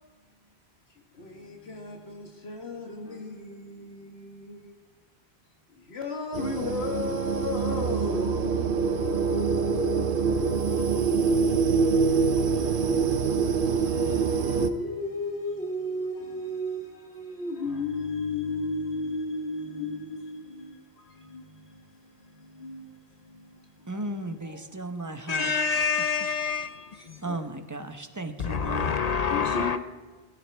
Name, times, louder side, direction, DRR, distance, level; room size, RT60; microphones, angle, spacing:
voice 1, 0.9-4.8 5.7-11.2 11.6-24.1 24.4-24.6 26.9-27.4 29.3-29.8, left 2 dB, 80° left, 1.6 m, -35 dB
sound 1, 6.3-14.7, right 5 dB, 60° right, 0.9 m, -25 dB
voice 2, 23.9-25.9 27.2-29.0, right 2 dB, 20° right, 0.9 m, -35 dB
voice 3, 25.3-27.2 28.4-29.8, left 5 dB, 45° left, 0.6 m, -27 dB
18.0 x 15.5 x 3.5 m
omnidirectional pair, 1.1 m